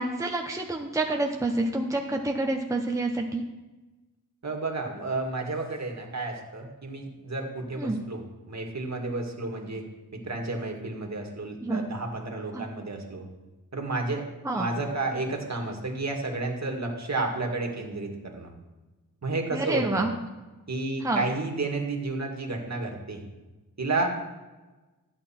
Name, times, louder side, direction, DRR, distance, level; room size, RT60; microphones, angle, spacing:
voice 1, 0.0-3.4 7.8-8.0 11.6-11.8 12.5-12.6 14.4-14.7 19.5-20.1 21.0-21.2, right 2 dB, 10° right, 2 dB, 0.8 m, -28 dB
voice 2, 4.4-9.9 10.1-13.3 13.7-14.2 14.6-18.5 19.2-20.1 20.7-23.2 23.8-24.1, right 3 dB, 50° right, 2 dB, 2.0 m, -31 dB
13.5 x 8.7 x 4.4 m, 1.2 s
wide cardioid pair, 85°, 36 cm